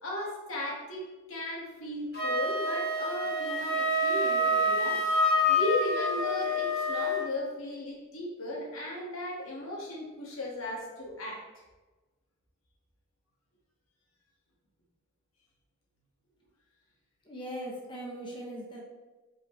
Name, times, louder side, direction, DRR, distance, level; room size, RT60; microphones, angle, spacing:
voice 1, 0.0-5.0 5.5-11.4, left 1 dB, 70° left, -2 dB, 1.8 m, -36 dB
Wind instrument woodwind instrument, 2.1-7.3, left 1 dB, 45° left, 1.7 m, -27 dB
voice 2, 17.3-18.8, equal, 25° left, -2 dB, 1.0 m, -39 dB
7.9 x 4.8 x 3.2 m, 1.2 s
head